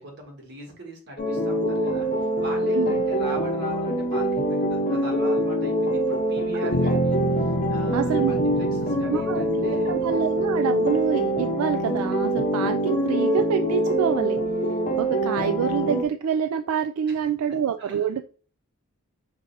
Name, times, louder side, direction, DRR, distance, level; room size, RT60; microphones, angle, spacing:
voice 1, 0.0-7.2 7.7-9.9 17.1-17.3 17.8-18.1, right 1 dB, 50° right, 0 dB, 1.5 m, -40 dB
sound 1, 1.2-16.0, right 1 dB, 35° left, 0.7 m, -24 dB
voice 2, 6.5-7.0 7.9-8.3 9.1-14.4 15.0-18.3, right 8 dB, 75° right, 8 dB, 0.3 m, -27 dB
sound 2, 6.6-12.7, equal, ahead, 1.4 m, -44 dB
sound 3, 6.7-10.7, left 2 dB, 75° left, 0.6 m, -30 dB
5.1 x 2.6 x 4.0 m, 0.39 s
head